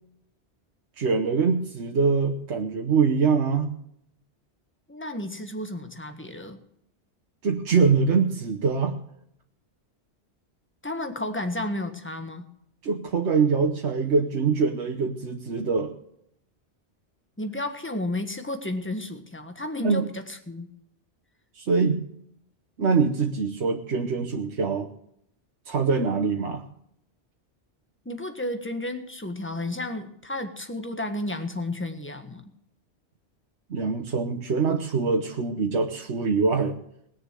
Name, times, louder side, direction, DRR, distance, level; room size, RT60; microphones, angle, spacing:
voice 1, 1.0-3.7 7.4-9.0 12.8-15.9 19.8-20.1 21.6-22.1 22.8-24.9 25.7-26.6 33.7-36.7, right 5 dB, 75° right, 2 dB, 1.4 m, -24 dB
voice 2, 4.9-6.6 10.8-12.5 17.4-20.7 28.0-32.5, left 1 dB, 10° left, 7 dB, 1.4 m, -32 dB
20.0 x 6.8 x 7.5 m, 0.72 s
omnidirectional pair, 1.2 m